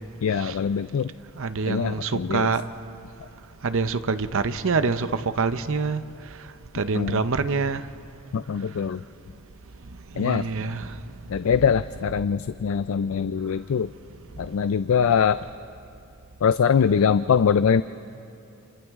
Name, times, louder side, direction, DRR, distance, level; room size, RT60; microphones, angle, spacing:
voice 1, 0.2-1.1 1.7-2.5 6.9-7.2 8.3-9.0 10.2-10.4 11.3-13.9 14.4-15.4 16.4-17.8, left 7 dB, 70° left, 0.4 m, -22 dB
voice 2, 1.4-2.6 3.6-6.0 6.7-7.8 10.1-11.0, right 4 dB, 65° right, 0.7 m, -26 dB
28.5 x 27.5 x 3.7 m
head